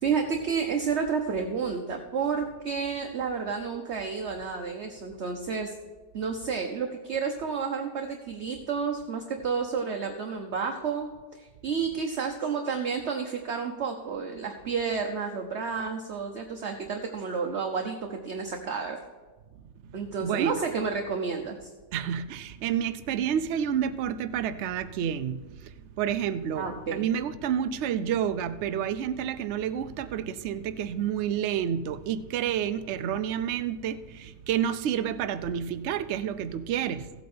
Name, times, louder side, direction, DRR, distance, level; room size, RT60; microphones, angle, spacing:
voice 1, 0.0-5.7 6.1-19.0 19.9-21.7 26.5-27.0, right 5 dB, 50° right, 4 dB, 0.9 m, -31 dB
voice 2, 20.2-20.7 21.9-37.1, right 9 dB, 75° right, 11 dB, 0.6 m, -29 dB
15.0 x 8.3 x 4.3 m, 1.3 s
omnidirectional pair, 1.8 m